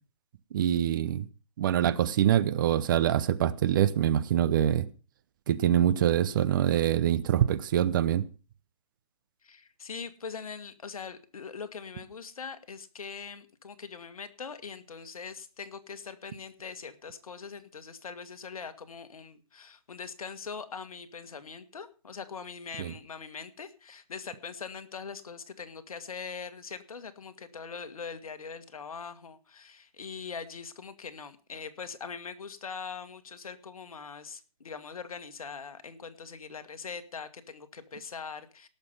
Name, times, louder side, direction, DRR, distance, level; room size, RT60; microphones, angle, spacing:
voice 1, 0.5-1.3 1.6-4.9 5.5-8.3 22.8-22.9, right 11 dB, 35° right, 0.8 m, -25 dB
voice 2, 9.4-38.7, left 5 dB, 65° left, 1.8 m, -42 dB
18.0 x 6.9 x 5.6 m
hypercardioid pair, 150°, 19 cm